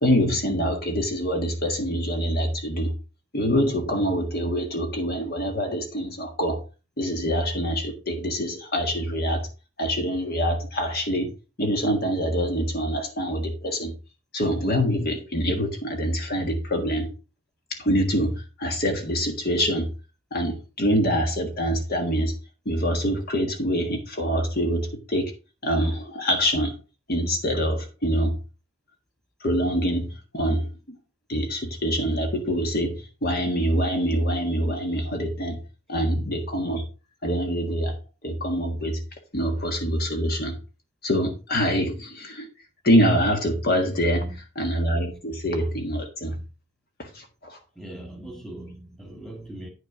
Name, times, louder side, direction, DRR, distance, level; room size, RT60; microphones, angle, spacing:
voice 1, 0.0-2.9 3.3-6.6 7.0-9.5 9.8-11.3 11.6-13.9 14.3-17.1 17.7-19.9 20.3-22.3 22.6-25.3 25.6-26.7 27.1-28.3 29.4-30.7 31.3-35.6 35.9-36.8 37.2-38.0 38.2-39.0 39.3-40.6 41.0-42.5 42.8-44.2 44.5-46.4 47.0-47.6, equal, 50° left, 1.6 m, -25 dB
voice 2, 43.9-44.4 47.8-49.7, right 1 dB, 5° left, 1.8 m, -40 dB
9.4 x 6.4 x 3.8 m
head